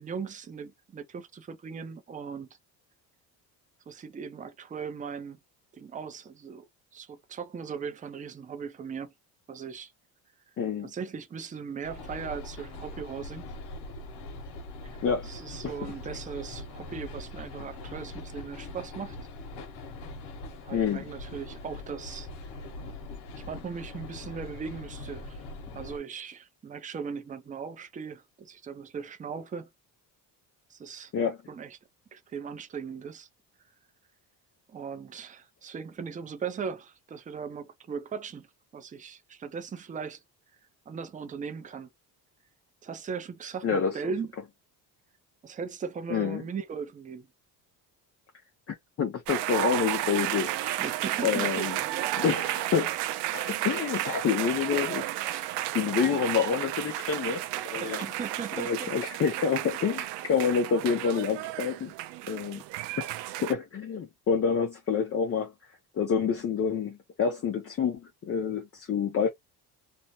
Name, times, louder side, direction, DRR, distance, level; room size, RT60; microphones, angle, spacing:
voice 1, 0.0-2.5 3.9-5.4 5.7-6.7 6.9-9.1 9.5-9.9 10.8-13.5 14.8-19.2 20.6-22.3 23.4-25.4 25.7-29.7 30.7-31.1 31.5-31.8 32.1-33.3 34.7-38.5 38.7-40.2 40.9-41.9 42.8-44.3 45.4-47.3 50.8-52.3 57.8-58.9, right 6 dB, 20° right, 0.5 m, -38 dB
voice 2, 10.6-10.9 15.0-15.3 15.6-15.9 20.7-21.0 31.1-31.4 43.6-44.0 46.1-46.4 48.7-50.8 51.2-51.8 52.2-52.9 53.3-55.5 55.7-58.0 58.6-61.9 62.3-62.6 63.0-63.1 63.4-65.5 65.9-69.3, left 6 dB, 35° left, 0.7 m, -28 dB
sound 1, 11.8-26.0, left 2 dB, 85° left, 0.9 m, -42 dB
sound 2, 49.3-63.5, right 15 dB, 85° right, 0.6 m, -33 dB
2.7 x 2.1 x 2.9 m
cardioid pair, 130°, 40 cm